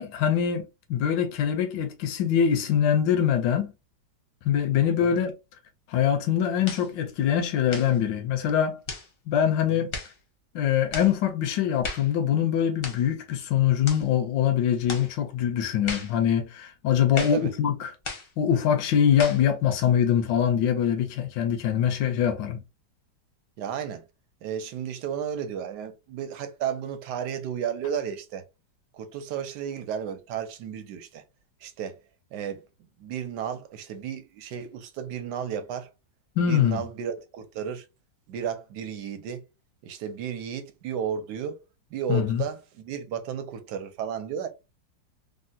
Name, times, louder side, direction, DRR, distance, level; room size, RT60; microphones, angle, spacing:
voice 1, 0.0-3.7 4.5-5.3 5.9-8.8 9.3-9.9 10.5-17.9 18.4-22.6 36.4-36.8 42.1-42.4, left 9 dB, 85° left, 1.3 m, -23 dB
sound 1, 6.6-6.9 7.7-8.0 8.9-9.1 9.9-10.2 10.9-11.1 11.8-12.1 12.8-13.1 13.8-14.1 14.9-15.1 15.9-16.2 17.1-17.4 18.0-18.3 19.2-19.5, left 4 dB, 55° left, 0.6 m, -35 dB
voice 2, 17.1-17.5 23.6-24.0 24.4-28.4 28.9-31.2 31.6-32.0 32.3-32.6 33.0-35.9 36.5-37.9 38.3-39.4 39.8-41.6 41.9-44.5, right 8 dB, 75° right, 1.1 m, -33 dB
3.5 x 2.1 x 2.6 m
omnidirectional pair, 2.0 m